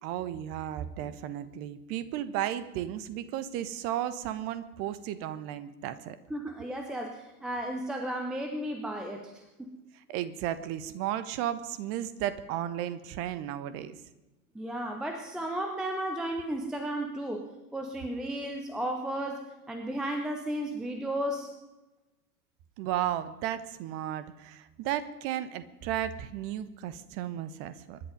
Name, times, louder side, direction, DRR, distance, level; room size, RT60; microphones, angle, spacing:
voice 1, 0.0-6.2 10.1-14.0 22.8-28.0, right 11 dB, 30° right, 14 dB, 1.0 m, -34 dB
voice 2, 6.3-9.7 14.5-21.5, right 1 dB, ahead, 5 dB, 0.4 m, -34 dB
24.5 x 11.0 x 5.3 m, 1.1 s
figure-of-eight pair, 100°, 47 cm